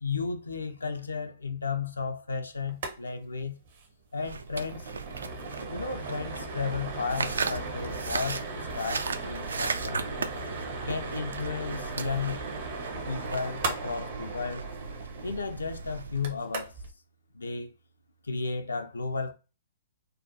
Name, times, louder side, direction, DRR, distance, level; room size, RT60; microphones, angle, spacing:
voice 1, 0.0-3.6 4.1-4.9 5.7-10.3 10.9-12.4 13.1-14.7 15.2-16.8 17.3-17.7 18.2-19.3, left 4 dB, 80° left, 0.4 m, -34 dB
sound 1, 2.7-3.0 3.2-3.3 3.7-3.8 4.2-16.9, right 3 dB, 55° right, 0.7 m, -38 dB
sound 2, 4.2-16.4, right 4 dB, 75° right, 0.3 m, -37 dB
2.6 x 2.2 x 2.6 m
figure-of-eight pair, 120°, 0 cm